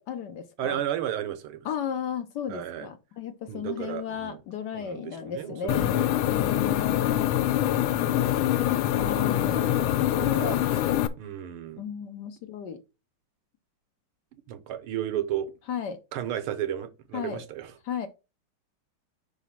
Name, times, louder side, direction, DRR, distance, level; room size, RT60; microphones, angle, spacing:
voice 1, 0.0-0.8 1.6-7.3 9.0-9.6 10.2-10.6 11.8-12.8 15.7-16.0 17.1-17.5 17.8-18.1, left 8 dB, 70° left, 1.1 m, -34 dB
voice 2, 0.6-1.7 2.5-2.9 3.5-4.4 4.7-6.1 6.5-7.0 7.8-10.8 11.2-11.9 14.5-15.5 16.1-17.7, right 11 dB, 90° right, 1.7 m, -34 dB
sound 1, 5.7-11.1, left 13 dB, 85° left, 1.5 m, -24 dB
5.2 x 4.0 x 5.7 m
omnidirectional pair, 2.3 m